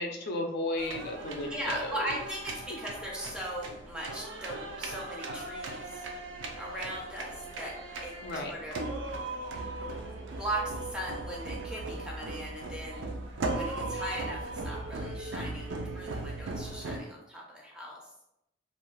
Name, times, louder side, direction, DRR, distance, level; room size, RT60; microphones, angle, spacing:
voice 1, 0.0-2.1 2.7-2.8 8.2-8.5, left 2 dB, 55° left, 3 dB, 0.4 m, -34 dB
sound 1, 0.8-17.0, right 2 dB, 75° right, 0.4 m, -38 dB
voice 2, 1.5-6.0 6.5-7.8 8.0-8.2 8.5-8.7 9.8-9.9 10.4-13.1 13.5-18.0, right 1 dB, 5° right, -2 dB, 0.4 m, -38 dB
2.4 x 2.2 x 3.1 m, 0.83 s
head